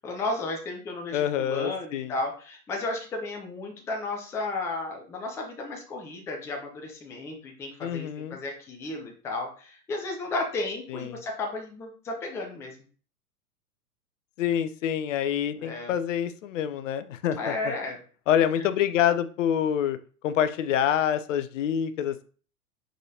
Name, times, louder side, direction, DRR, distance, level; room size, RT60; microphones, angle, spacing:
voice 1, 0.0-12.8 15.6-15.9 17.4-18.0, left 2 dB, 5° left, 2 dB, 0.4 m, -33 dB
voice 2, 1.1-2.1 7.8-8.4 10.9-11.2 14.4-17.7 18.3-20.0 20.2-22.2, left 9 dB, 55° left, 11 dB, 0.6 m, -26 dB
4.9 x 3.8 x 2.8 m, 0.41 s
figure-of-eight pair, 100°, 46 cm